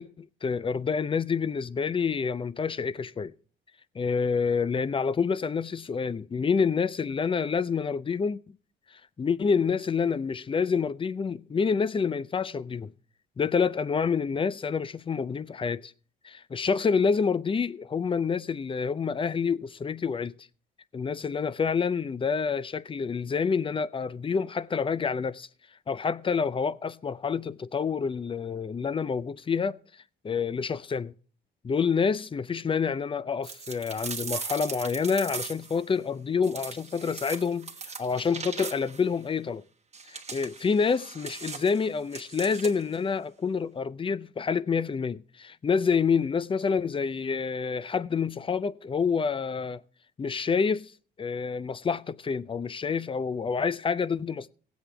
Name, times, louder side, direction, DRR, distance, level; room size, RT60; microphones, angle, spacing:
voice 1, 0.0-3.3 3.9-8.4 9.2-12.9 13.4-15.9 16.2-20.3 20.9-25.5 25.9-29.8 30.2-31.1 31.6-39.6 40.1-49.8 50.2-50.9 51.2-54.5, left 5 dB, 25° left, 0.5 m, -28 dB
sound 1, 33.4-35.8 36.4-39.1 39.9-43.0, right 5 dB, 35° right, 1.1 m, -39 dB
17.0 x 7.9 x 3.3 m
cardioid pair, 90°, 20 cm